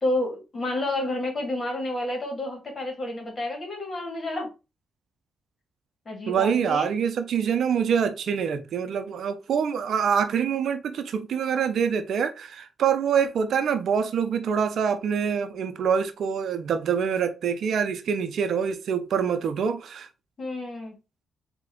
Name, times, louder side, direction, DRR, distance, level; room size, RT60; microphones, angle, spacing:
voice 1, 0.0-4.5 6.1-6.9 20.4-21.0, left 1 dB, 45° left, 2.2 m, -30 dB
voice 2, 6.3-20.1, right 7 dB, 70° right, 0.6 m, -25 dB
4.2 x 2.9 x 3.8 m
supercardioid pair, 60°, 0 cm